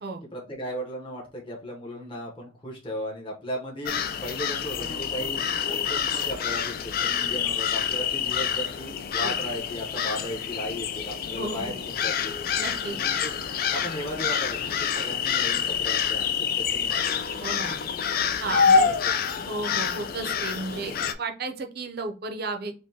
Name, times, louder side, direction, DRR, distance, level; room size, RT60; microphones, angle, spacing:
voice 1, 0.3-3.9 4.2-12.4 12.9-13.3 13.7-17.2 18.5-19.2, equal, 25° left, -1 dB, 0.9 m, -36 dB
sound 1, 3.9-21.1, left 7 dB, 45° left, 0.3 m, -27 dB
voice 2, 11.4-11.7 12.6-13.0 17.4-17.8 18.4-18.9 19.4-22.7, right 3 dB, 50° right, 5 dB, 0.5 m, -33 dB
5.1 x 2.2 x 2.7 m, 0.36 s
head